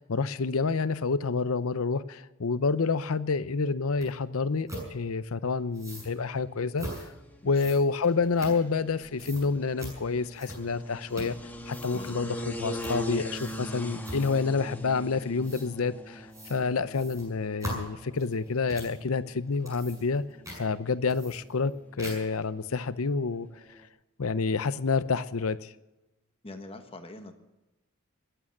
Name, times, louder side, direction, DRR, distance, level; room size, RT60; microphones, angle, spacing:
voice 1, 0.0-6.9 7.4-11.3 11.7-20.2 20.6-23.5 24.2-25.7, left 4 dB, 75° left, 0.7 m, -28 dB
sound 1, 4.0-4.1 4.7-4.9 5.7-6.1 6.8-7.1 7.5-8.9 9.2-9.5 9.8-10.0 10.4-10.8 11.1-11.4 11.7-12.1 12.8-13.0 13.3-13.7 14.0-14.5 15.4-15.7 16.3-16.6 16.9-19.0 19.5-20.2 20.4-20.6 21.1-21.7 22.0-22.4, right 1 dB, 15° right, 7.2 m, -40 dB
sound 2, 5.8-23.9, equal, 10° left, 1.5 m, -43 dB
voice 2, 11.9-12.3 26.4-27.3, left 2 dB, 25° left, 1.4 m, -44 dB
22.0 x 9.0 x 7.3 m
head